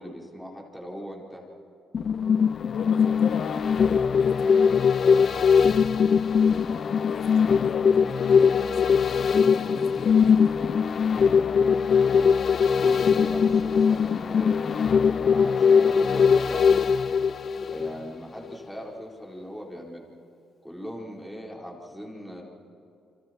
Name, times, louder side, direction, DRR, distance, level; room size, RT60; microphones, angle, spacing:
voice 1, 0.0-1.4 12.0-12.4 12.7-16.6 17.7-20.1 20.6-22.4, equal, 5° left, -2 dB, 4.5 m, -39 dB
sound 1, 1.9-18.2 18.5-18.6, left 6 dB, 50° left, 0.4 m, -21 dB
voice 2, 2.6-5.4 6.5-10.7, left 6 dB, 70° left, 5 dB, 2.1 m, -40 dB
29.5 x 26.0 x 4.5 m, 2.7 s
cardioid pair, 90°, 0 cm